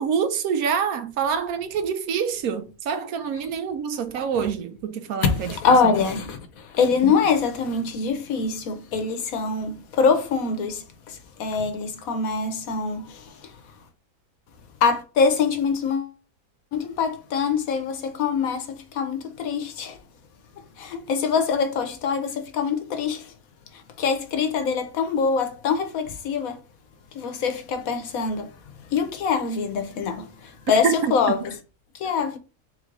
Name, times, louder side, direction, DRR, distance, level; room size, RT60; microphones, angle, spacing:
voice 1, 0.0-5.6 5.8-5.9 7.0-7.2 30.8-31.3, right 7 dB, 80° right, 1.1 m, -26 dB
voice 2, 5.2-13.5 14.8-16.1 16.7-20.0 20.8-23.3 23.7-26.6 27.1-28.5 28.9-31.5 31.9-32.4, left 5 dB, 70° left, 1.2 m, -24 dB
3.8 x 3.3 x 3.7 m
omnidirectional pair, 1.6 m